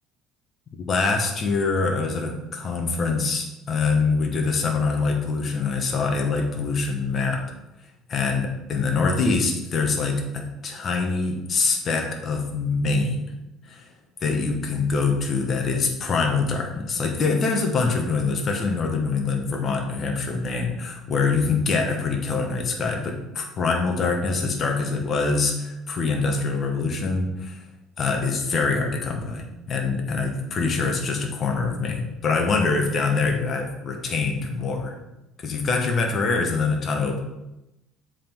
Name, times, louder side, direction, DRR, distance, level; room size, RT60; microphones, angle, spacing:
voice 1, 0.9-7.4 8.1-13.2 13.7-13.9 14.2-27.6 28.0-35.0 35.4-37.2, left 4 dB, 35° left, 2 dB, 1.1 m, -24 dB
7.5 x 3.8 x 4.4 m, 0.93 s
cardioid pair, 135°, 0 cm